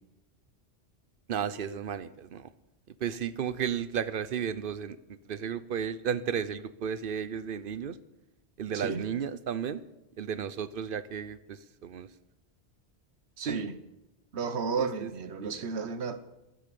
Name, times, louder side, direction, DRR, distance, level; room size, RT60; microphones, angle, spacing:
voice 1, 1.3-2.5 3.0-8.0 8.6-9.8 10.2-12.1 13.4-13.6 14.8-15.1 15.4-15.7, right 8 dB, 60° right, 15 dB, 0.8 m, -34 dB
voice 2, 8.7-9.0 13.4-13.7 14.3-16.2, right 5 dB, 75° right, 11 dB, 1.3 m, -33 dB
12.0 x 10.5 x 7.6 m, 0.95 s
omnidirectional pair, 1.1 m